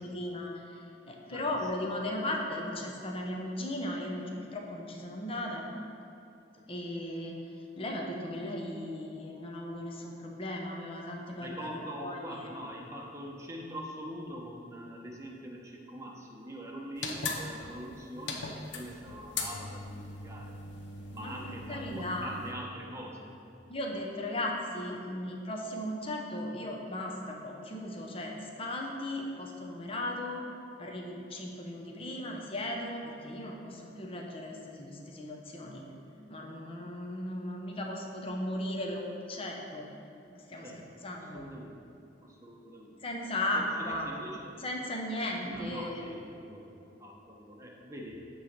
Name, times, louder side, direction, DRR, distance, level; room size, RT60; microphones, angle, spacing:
voice 1, 0.0-5.6 6.7-7.3 7.8-12.5 21.2-22.4 23.7-30.4 30.8-35.9 36.3-39.9 40.3-40.7 41.0-41.5 43.0-44.1 44.6-46.1, left 1 dB, 30° left, 0 dB, 0.8 m, -36 dB
voice 2, 11.4-20.5 21.1-23.3 40.6-40.8 41.3-41.8 42.2-43.0 43.5-44.5 45.4-46.7 46.9-48.3, equal, 15° right, -1 dB, 0.9 m, -43 dB
sound 1, 17.0-22.5, left 3 dB, 80° left, 0.7 m, -39 dB
8.7 x 3.2 x 6.5 m, 2.7 s
head